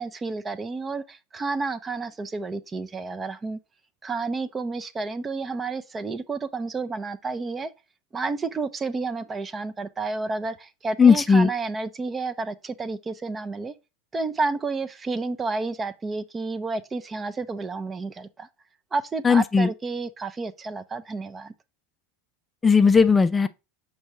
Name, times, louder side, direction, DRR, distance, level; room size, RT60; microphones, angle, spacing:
voice 1, 0.0-3.6 4.0-7.7 8.1-13.7 14.1-18.5 18.9-21.5, right 3 dB, 20° right, 0.7 m, -30 dB
voice 2, 11.0-11.5 19.2-19.7 22.6-23.5, left 5 dB, 15° left, 0.4 m, -17 dB
7.2 x 4.7 x 3.0 m
figure-of-eight pair, 80°, 0 cm